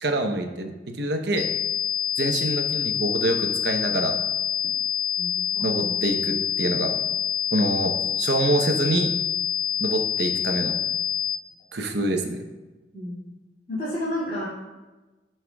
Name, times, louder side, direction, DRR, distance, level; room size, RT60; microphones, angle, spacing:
voice 1, 0.0-0.7 1.0-1.5 2.2-4.1 5.6-6.9 7.5-9.1 9.8-10.8 11.7-12.4, right 1 dB, 65° right, 4 dB, 0.9 m, -25 dB
sound 1, 1.4-11.4, left 9 dB, 85° left, 0.8 m, -26 dB
voice 2, 5.2-6.0 12.9-13.3 13.7-14.5, left 1 dB, 35° left, -10 dB, 2.4 m, -31 dB
14.5 x 5.8 x 2.3 m, 1.2 s
head